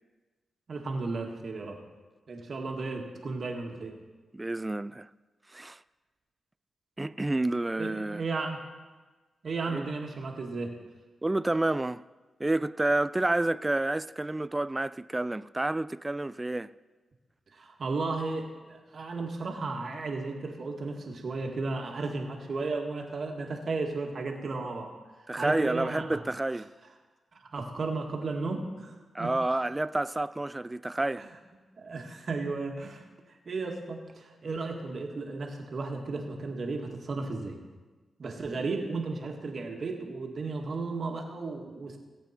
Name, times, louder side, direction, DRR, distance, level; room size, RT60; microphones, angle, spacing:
voice 1, 0.7-1.8 2.3-3.9 7.8-8.6 9.4-10.8 17.5-24.9 25.4-26.2 27.4-29.3 31.2-31.3 31.8-33.0 33.5-37.6 38.2-42.0, right 3 dB, 60° right, 1.9 m, -34 dB
voice 2, 4.3-5.1 5.5-5.8 7.0-8.2 9.7-9.9 11.2-12.0 12.4-16.7 25.3-26.7 29.1-31.3, right 2 dB, 20° right, 0.3 m, -29 dB
18.5 x 8.2 x 4.4 m
cardioid pair, 70°, 0 cm